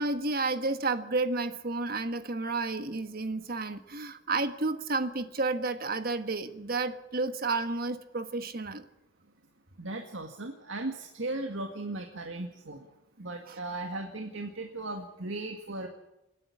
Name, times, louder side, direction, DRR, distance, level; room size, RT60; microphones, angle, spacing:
voice 1, 0.0-8.9 13.5-13.6, right 3 dB, 50° right, 9 dB, 1.5 m, -31 dB
voice 2, 9.8-12.8 13.2-15.9, right 2 dB, 70° right, 3 dB, 2.0 m, -37 dB
27.5 x 10.5 x 9.8 m, 0.92 s
head